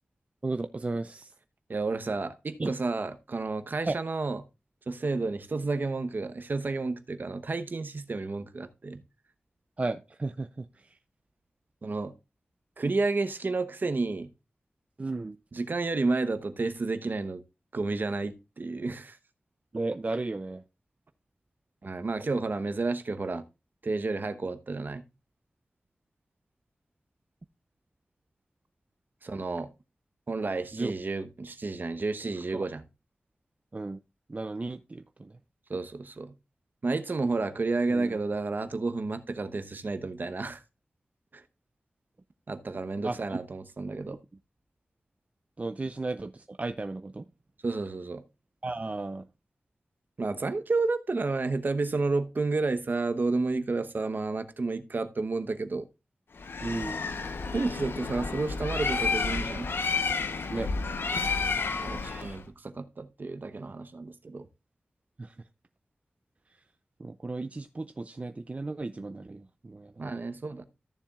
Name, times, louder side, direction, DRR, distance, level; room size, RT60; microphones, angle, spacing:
voice 1, 0.4-1.3 2.6-2.7 3.9-4.0 9.8-10.7 15.0-15.4 19.7-20.6 30.7-30.9 32.5-32.6 33.7-34.0 34.3-35.3 37.9-38.2 43.0-43.4 45.6-47.2 48.6-49.3 56.6-57.0 60.5-60.7 62.0-62.4 65.2-65.3 67.0-69.9, right 2 dB, 35° right, 0.5 m, -34 dB
voice 2, 1.7-4.4 4.9-9.0 11.8-12.1 12.8-14.3 15.5-17.4 17.7-19.2 21.8-23.4 23.8-25.0 29.2-29.7 30.3-32.8 35.7-36.3 36.8-40.6 41.3-41.4 42.5-44.2 47.6-48.2 50.2-55.8 57.5-59.7 60.1-60.2 61.8-64.5 70.0-70.6, right 3 dB, 55° right, 0.9 m, -31 dB
Bird, 56.4-62.4, left 4 dB, 75° left, 0.9 m, -31 dB
14.0 x 7.0 x 2.4 m
wide cardioid pair, 65°, 4 cm